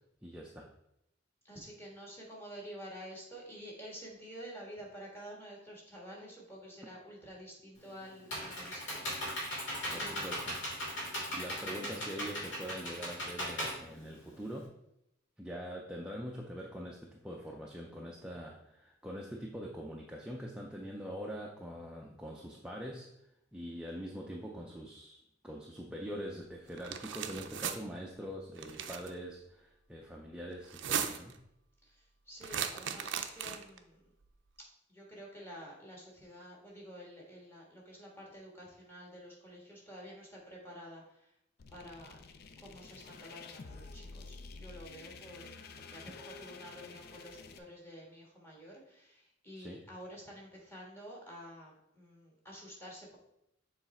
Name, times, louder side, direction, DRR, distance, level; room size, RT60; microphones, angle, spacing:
voice 1, 0.2-0.7 9.9-10.6 11.3-14.7 15.4-23.1 23.5-25.2 25.4-31.3 49.6-49.8, equal, 5° right, -2 dB, 0.5 m, -43 dB
voice 2, 1.4-9.6 9.9-10.5 11.5-12.0 31.8-34.1 34.9-41.3 41.7-42.2 42.6-45.5 45.9-53.2, equal, 10° left, -3 dB, 1.5 m, -50 dB
Computer keyboard, 7.8-14.6, equal, 70° left, 2.3 m, -38 dB
sound 1, 26.8-27.8 28.6-29.1 30.6-31.4 32.4-33.8, right 8 dB, 65° right, 0.5 m, -37 dB
sound 2, 41.6-47.6, left 4 dB, 55° left, 0.4 m, -50 dB
7.2 x 3.2 x 4.3 m, 0.82 s
head